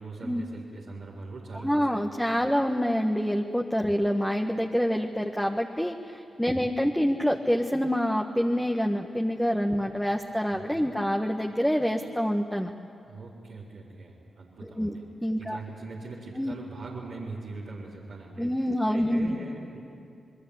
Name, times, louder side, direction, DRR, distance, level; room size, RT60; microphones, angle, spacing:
voice 1, 0.0-2.0 2.4-2.5 6.5-6.7 10.7-10.9 13.1-15.0 15.4-19.8, right 3 dB, 85° right, -8 dB, 4.1 m, -42 dB
voice 2, 1.5-12.7 14.6-14.9 15.2-15.6 16.4-16.6 18.4-19.4, equal, 5° left, 2 dB, 1.6 m, -26 dB
27.5 x 21.0 x 8.2 m, 2.5 s
supercardioid pair, 40°, 0 cm